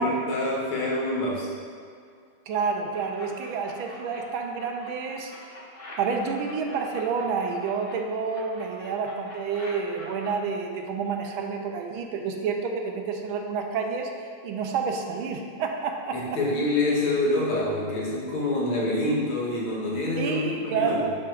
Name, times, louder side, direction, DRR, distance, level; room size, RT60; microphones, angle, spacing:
voice 1, 0.0-1.5 16.1-21.1, left 2 dB, 85° left, -5 dB, 2.1 m, -26 dB
voice 2, 2.5-5.3 6.0-14.1 14.4-16.2 20.2-21.2, right 5 dB, 80° right, 3 dB, 1.5 m, -29 dB
sound 1, 2.9-4.2 4.5-7.9 8.3-10.3, left 1 dB, 25° left, 1.3 m, -45 dB
11.5 x 4.4 x 2.5 m, 2.3 s
omnidirectional pair, 2.2 m